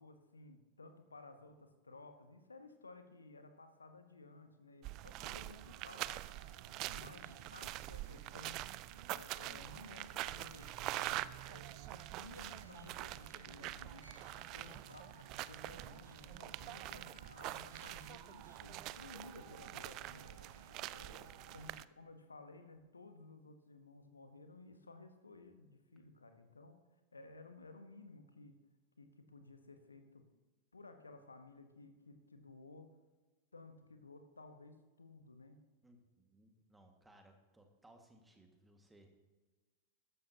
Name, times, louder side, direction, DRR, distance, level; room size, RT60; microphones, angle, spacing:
voice 1, 0.0-6.5 6.9-8.7 9.1-14.1 14.5-20.4 20.9-26.8 27.1-28.6 29.0-30.2 30.7-32.9 33.5-35.6, left 3 dB, 75° left, 8 dB, 1.0 m, -56 dB
sound 1, 4.8-21.8, right 16 dB, 40° right, 0.3 m, -45 dB
voice 2, 5.1-5.6 14.3-14.9 20.8-21.4 35.8-39.1, right 1 dB, 10° right, 4 dB, 1.8 m, -64 dB
sound 2, 5.2-21.8, right 2 dB, 85° right, 0.6 m, -61 dB
14.5 x 11.0 x 2.8 m, 1.2 s
figure-of-eight pair, 90°, 0 cm